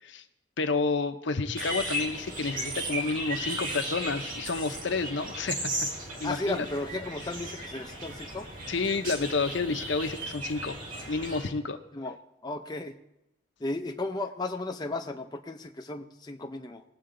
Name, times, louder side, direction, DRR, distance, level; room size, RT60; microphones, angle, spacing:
voice 1, 0.6-5.7 6.2-6.7 8.7-10.8 11.1-11.8, left 4 dB, 60° left, 8 dB, 0.8 m, -30 dB
sound 1, 1.5-11.5, right 1 dB, 45° right, 2.5 m, -36 dB
sound 2, 1.6-11.5, equal, 75° right, 4.9 m, -49 dB
voice 2, 6.2-8.5 11.9-12.2 12.4-13.0 13.6-16.8, left 2 dB, 20° left, 4 dB, 0.5 m, -34 dB
20.0 x 7.9 x 3.8 m, 0.89 s
head